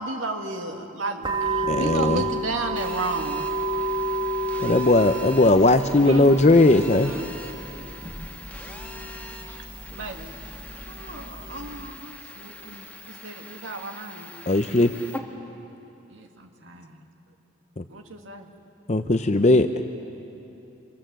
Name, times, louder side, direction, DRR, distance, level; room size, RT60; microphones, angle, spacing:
voice 1, 0.0-3.5 6.0-6.3 7.0-7.3 9.9-10.3 13.1-14.3 17.9-18.5, right 2 dB, 90° right, 3 dB, 2.2 m, -32 dB
sound 1, 1.2-11.9, right 2 dB, 25° right, 2.5 m, -31 dB
voice 2, 1.7-2.2 4.6-7.1 14.5-14.9 17.8-17.9 18.9-19.7, left 2 dB, 35° left, 8 dB, 0.7 m, -18 dB
Telephone, 2.8-15.2, left 2 dB, 10° left, 1.7 m, -42 dB
voice 3, 10.9-12.9 16.1-17.0, right 1 dB, 65° right, 3 dB, 2.0 m, -43 dB
27.0 x 26.5 x 7.7 m, 2.9 s
head